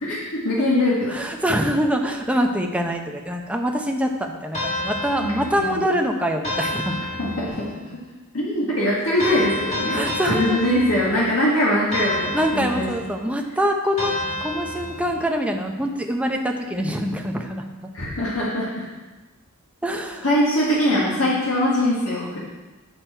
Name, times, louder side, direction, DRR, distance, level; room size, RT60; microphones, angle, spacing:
voice 1, 0.0-1.2 5.2-5.8 7.2-8.0 8.3-12.9 17.9-18.9 20.2-22.4, left 1 dB, 70° left, -6 dB, 1.9 m, -22 dB
voice 2, 1.1-7.0 9.9-10.6 12.3-14.1 14.4-17.9 19.8-20.2, equal, 5° right, 2 dB, 0.7 m, -24 dB
sound 1, 4.5-5.9 6.4-7.8 9.2-11.4 11.9-13.2 14.0-15.3, left 1 dB, 35° left, 2.0 m, -29 dB
10.0 x 6.1 x 4.5 m, 1.2 s
head